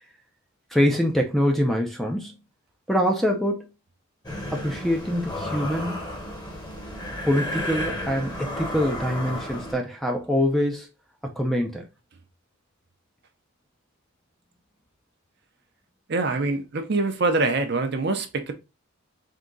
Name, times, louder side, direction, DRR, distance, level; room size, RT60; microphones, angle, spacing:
voice 1, 0.7-2.3 2.9-3.7 4.5-6.1 7.3-10.9 11.2-11.9, equal, ahead, 0.5 m, -24 dB
sound 1, 4.2-9.8, left 1 dB, 20° left, 1.0 m, -32 dB
voice 2, 16.1-18.5, right 3 dB, 50° right, 0.6 m, -24 dB
3.7 x 2.8 x 3.8 m
head